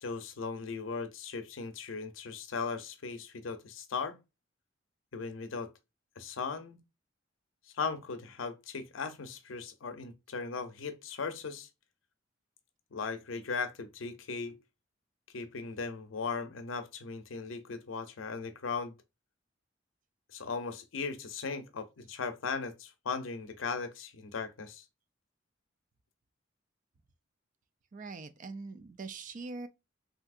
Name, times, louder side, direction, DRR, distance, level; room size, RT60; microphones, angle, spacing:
voice 1, 0.0-4.2 5.1-5.7 6.2-6.8 7.7-11.7 12.9-14.6 15.3-18.9 20.3-24.8, left 5 dB, 90° left, 0.6 m, -38 dB
voice 2, 27.9-29.7, right 3 dB, 40° right, 0.4 m, -42 dB
3.4 x 2.7 x 2.4 m
head